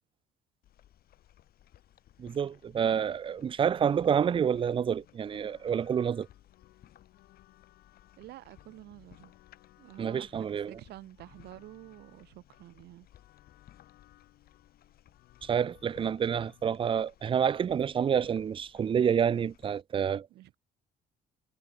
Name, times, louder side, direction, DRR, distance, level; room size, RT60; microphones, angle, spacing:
sound 1, 0.6-19.8, left 12 dB, 65° left, 6.6 m, -60 dB
voice 1, 2.2-6.3 10.0-10.8 15.4-20.3, right 8 dB, 30° right, 0.5 m, -28 dB
sound 2, 3.2-16.7, left 17 dB, 85° left, 7.2 m, -63 dB
voice 2, 8.2-9.3 9.8-13.1 20.3-20.6, right 16 dB, 75° right, 4.5 m, -49 dB
cardioid pair, 110°, 17 cm